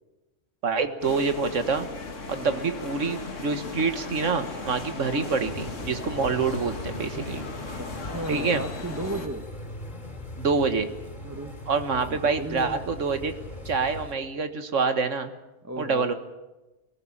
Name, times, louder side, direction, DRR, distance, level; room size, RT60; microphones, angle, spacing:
voice 1, 0.6-1.9 2.3-7.4 8.3-8.6 10.4-10.9 11.7-13.3 13.7-15.3 15.8-16.1, right 4 dB, 85° right, 8 dB, 1.8 m, -26 dB
sound 1, 1.0-9.3, left 3 dB, 90° left, 2.4 m, -37 dB
voice 2, 2.3-2.7 5.0-5.3 7.8-9.4 11.2-11.6 12.1-12.8 15.6-16.0, right 1 dB, 15° right, 7 dB, 1.0 m, -35 dB
sound 2, 5.4-14.1, left 1 dB, 40° left, 3.3 m, -39 dB
21.0 x 18.5 x 8.7 m, 1.1 s
omnidirectional pair, 1.3 m